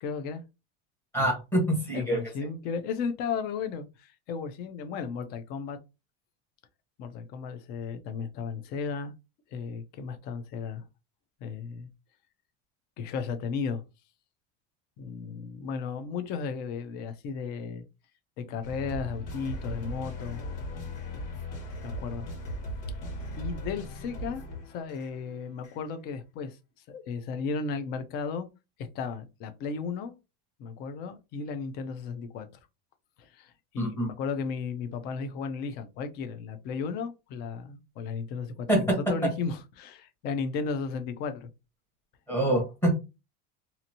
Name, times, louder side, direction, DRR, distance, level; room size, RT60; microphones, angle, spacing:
voice 1, 0.0-0.4 1.9-5.8 7.0-9.1 9.5-10.8 11.4-11.9 13.0-13.8 15.0-17.8 18.4-20.4 21.8-22.3 23.4-26.6 26.9-28.5 28.9-30.1 30.6-32.5 33.2-38.8 39.1-41.5, left 5 dB, 30° left, 0.4 m, -34 dB
voice 2, 1.1-2.2 33.8-34.1 38.7-39.0 42.3-42.9, right 1 dB, 5° left, 0.9 m, -25 dB
sound 1, 18.6-25.8, left 1 dB, 60° left, 1.5 m, -38 dB
2.8 x 2.5 x 2.7 m
cardioid pair, 175°, 31 cm